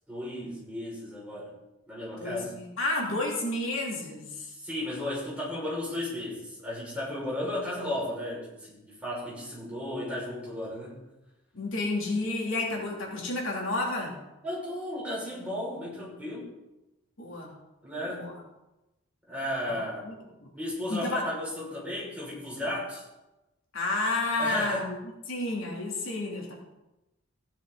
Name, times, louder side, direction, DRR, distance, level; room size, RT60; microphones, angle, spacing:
voice 1, 0.1-1.5 1.9-2.6 4.5-11.0 14.4-16.5 17.8-18.4 19.3-20.1 20.5-23.0 24.4-24.9, left 1 dB, 5° right, -7 dB, 5.7 m, -34 dB
voice 2, 2.1-4.5 11.5-14.2 17.2-17.5 18.1-18.3 20.0-20.1 20.4-20.5 20.9-21.3 23.7-24.9 25.3-26.5, left 2 dB, 75° left, -2 dB, 3.0 m, -31 dB
15.5 x 10.5 x 4.0 m, 0.98 s
head